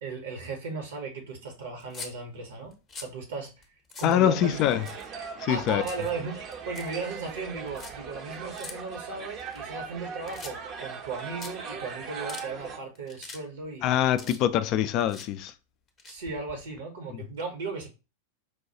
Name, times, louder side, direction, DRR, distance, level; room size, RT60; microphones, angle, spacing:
voice 1, 0.0-3.6 4.0-4.6 5.5-13.9 16.0-17.9, right 4 dB, 60° right, 1.0 m, -36 dB
sound 1, 1.8-2.1 2.7-3.2 3.6-3.7 3.9-4.2 4.7-5.3 5.5-6.1 6.5-6.9 7.7-7.9 8.6-8.7 9.4-10.0 10.3-10.8 11.1-11.2 11.4-11.5 12.0-12.5 13.0-13.4 13.7-14.7 15.0-15.3 15.9-16.8, left 4 dB, 20° left, 0.7 m, -43 dB
voice 2, 4.0-4.9 5.4-5.8 13.8-15.5 17.1-17.3, left 11 dB, 40° left, 0.3 m, -24 dB
sound 2, 4.4-12.8, right 6 dB, 35° right, 0.6 m, -39 dB
4.6 x 2.2 x 2.8 m
figure-of-eight pair, 90°, 0 cm